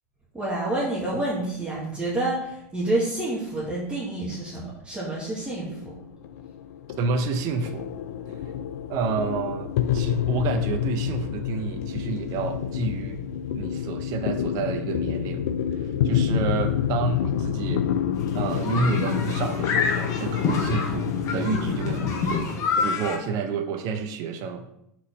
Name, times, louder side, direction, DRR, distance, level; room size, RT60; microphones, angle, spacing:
voice 1, 0.3-5.9, right 2 dB, 15° right, -7 dB, 1.8 m, -28 dB
sound 1, 5.6-22.4, left 9 dB, 70° left, 0.5 m, -28 dB
voice 2, 7.0-8.0 8.9-13.2 13.6-15.4 16.0-17.9 18.3-22.4 22.8-24.7, right 5 dB, 45° right, 6 dB, 0.7 m, -29 dB
sound 2, 18.2-23.2, left 4 dB, 40° left, 1.2 m, -27 dB
4.5 x 4.1 x 5.2 m, 0.77 s
hypercardioid pair, 105°, 9 cm